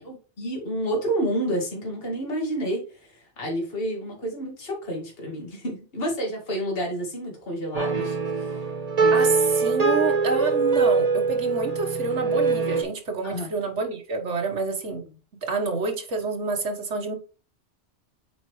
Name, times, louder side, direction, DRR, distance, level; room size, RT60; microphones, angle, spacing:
voice 1, 0.0-8.6 13.2-13.5, right 1 dB, 55° left, 0 dB, 2.1 m, -30 dB
sound 1, 7.7-12.8, right 4 dB, 35° right, 1.1 m, -23 dB
voice 2, 9.1-15.0 15.4-17.1, right 4 dB, 90° right, 3 dB, 1.6 m, -28 dB
8.0 x 4.4 x 3.1 m, 0.34 s
omnidirectional pair, 1.2 m